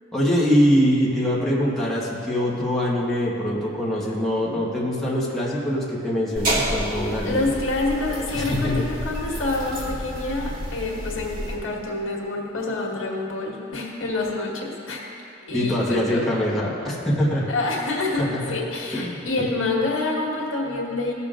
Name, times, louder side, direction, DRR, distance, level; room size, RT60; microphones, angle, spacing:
voice 1, 0.1-7.4 8.3-8.8 15.5-17.5 18.2-18.4 18.9-19.2, equal, ahead, -7 dB, 1.4 m, -23 dB
sound 1, 6.4-11.6, equal, 45° right, 1.8 m, -30 dB
voice 2, 7.2-15.0 15.5-16.2 17.5-21.1, left 2 dB, 75° left, -2 dB, 1.6 m, -27 dB
17.0 x 6.9 x 2.5 m, 2.7 s
head